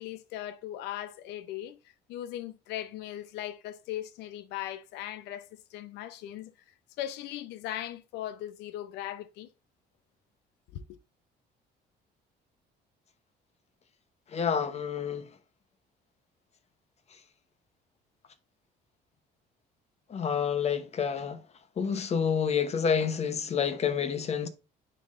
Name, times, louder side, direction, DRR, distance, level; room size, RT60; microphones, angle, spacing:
voice 1, 0.0-1.8 2.1-6.5 7.0-9.5 10.7-10.8, left 12 dB, 85° left, 0.6 m, -38 dB
voice 2, 14.3-15.3 20.1-21.4 21.8-24.5, left 7 dB, 40° left, 0.9 m, -28 dB
10.0 x 3.8 x 2.5 m
cardioid pair, 110°, 17 cm